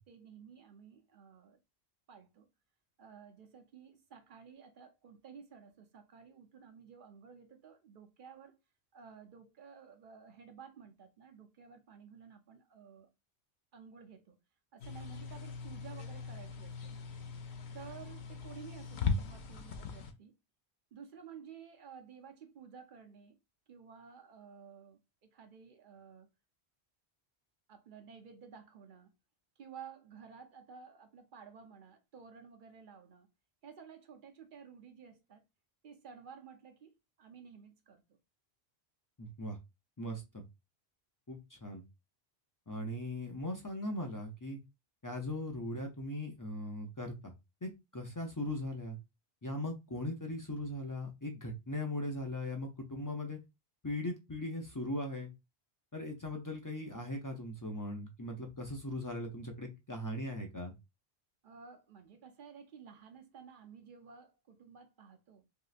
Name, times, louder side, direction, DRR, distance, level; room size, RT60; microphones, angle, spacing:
voice 1, 0.0-1.6 2.1-2.5 3.0-8.6 8.9-13.1 13.7-14.4 14.7-17.1 17.7-20.3 20.9-23.4 23.7-26.3 27.7-29.1 29.6-33.3 33.6-35.4 35.8-38.0 61.4-65.4, right 6 dB, 55° right, 0.7 m, -53 dB
sound 1, 14.8-20.1, left 5 dB, 85° left, 0.9 m, -39 dB
voice 2, 39.2-39.6 40.0-40.4 41.3-41.8 42.7-44.6 45.0-47.3 47.6-49.0 49.4-53.4 53.8-55.3 55.9-60.7, left 1 dB, 35° left, 0.3 m, -39 dB
3.1 x 2.7 x 2.4 m
omnidirectional pair, 1.1 m